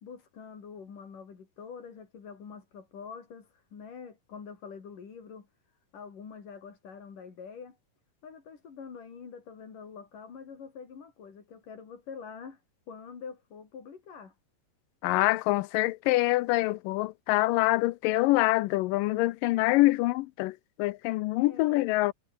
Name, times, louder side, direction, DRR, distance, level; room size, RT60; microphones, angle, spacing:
voice 1, 0.0-5.5 5.9-7.8 8.2-12.6 12.9-14.3 21.4-21.9, left 6 dB, 70° left, 5.5 m, -45 dB
voice 2, 15.0-22.1, left 19 dB, 85° left, 2.3 m, -25 dB
omnidirectional pair, 3.9 m